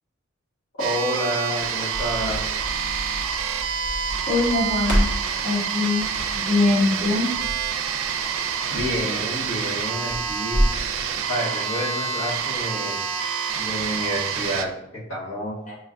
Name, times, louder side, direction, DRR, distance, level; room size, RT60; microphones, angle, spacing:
voice 1, 0.8-2.6 8.7-10.6 11.3-13.0 13.6-15.6, equal, 70° left, -6 dB, 1.6 m, -29 dB
sound 1, 0.8-14.7, right 7 dB, 80° right, 0.4 m, -27 dB
Crackle, 1.6-10.8, equal, 55° left, 1.2 m, -30 dB
voice 2, 4.3-5.1 5.4-6.1 6.4-7.3 15.7-15.8, left 3 dB, 35° left, -4 dB, 1.2 m, -22 dB
5.0 x 3.3 x 2.5 m, 0.78 s
head